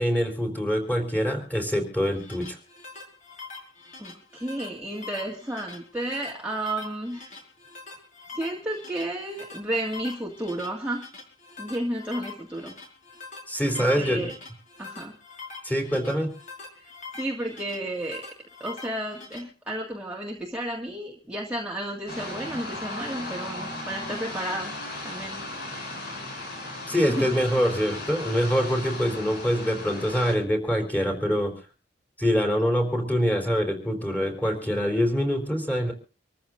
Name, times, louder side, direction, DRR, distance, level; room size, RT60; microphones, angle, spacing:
voice 1, 0.0-2.6 13.5-14.3 15.6-16.3 26.9-31.5 32.2-35.9, equal, 10° left, 4 dB, 3.9 m, -25 dB
sound 1, 1.9-19.4, left 4 dB, 40° left, 5.1 m, -44 dB
voice 2, 4.0-7.3 8.3-11.1 11.6-12.7 13.8-14.3 14.8-15.1 16.7-18.3 18.6-24.8 25.0-25.6 27.1-27.4, right 1 dB, 5° right, -2 dB, 2.0 m, -32 dB
sound 2, 22.1-30.3, left 2 dB, 60° left, 6.7 m, -36 dB
26.5 x 14.5 x 2.6 m, 0.36 s
head